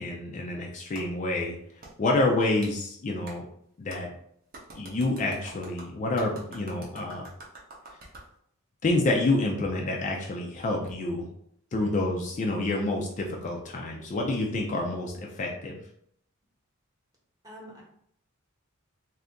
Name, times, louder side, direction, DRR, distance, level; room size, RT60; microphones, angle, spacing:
voice 1, 0.0-1.5 2.0-3.5 3.8-4.1 4.7-7.3 8.8-11.3 11.7-15.8, left 2 dB, 35° left, 0 dB, 0.4 m, -28 dB
Clapping, 0.9-1.1 1.8-1.9 2.6-2.7 3.3-3.4 3.9-4.0 4.5-8.3, right 2 dB, 45° right, 0.7 m, -46 dB
voice 2, 17.4-17.8, equal, 15° right, -4 dB, 1.0 m, -46 dB
2.7 x 2.5 x 3.4 m, 0.70 s
head